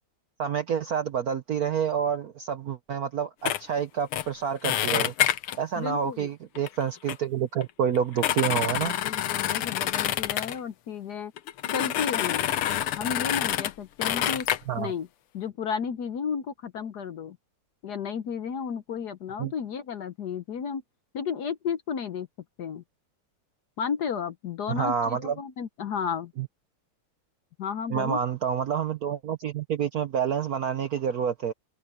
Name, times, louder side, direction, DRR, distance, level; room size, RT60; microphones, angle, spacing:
voice 1, 0.4-5.1 5.6-8.9 14.7-14.9 19.4-19.5 24.7-25.4 26.4-26.5 27.9-31.5, right 8 dB, 65° right, 0.9 m, -28 dB
sound 1, 3.5-3.6 4.1-4.3 4.6-5.6 6.6-6.7 7.1-7.2 7.6-7.7 8.0-10.6 11.4-13.7 14.0-14.6, left 12 dB, 80° left, 1.8 m, -27 dB
voice 2, 5.8-6.3 8.6-11.3 11.7-12.5 12.9-14.5 14.8-15.1 15.3-17.4 17.8-20.8 21.1-22.3 22.6-22.8 23.8-26.3 27.6-28.2, left 7 dB, 60° left, 1.2 m, -33 dB
omnidirectional pair, 2.4 m